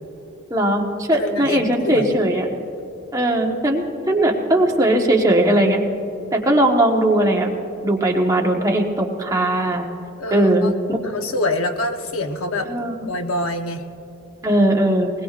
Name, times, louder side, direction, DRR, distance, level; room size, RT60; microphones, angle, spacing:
voice 1, 0.5-2.5 3.1-5.8 6.3-7.5 7.8-9.8 10.3-11.0 12.6-13.1 14.4-15.1, right 1 dB, 15° right, 0 dB, 1.2 m, -19 dB
voice 2, 1.2-2.2 10.2-10.7 11.0-12.7 13.0-13.9, left 2 dB, 85° left, 5 dB, 1.0 m, -25 dB
20.5 x 20.0 x 2.5 m, 2.9 s
head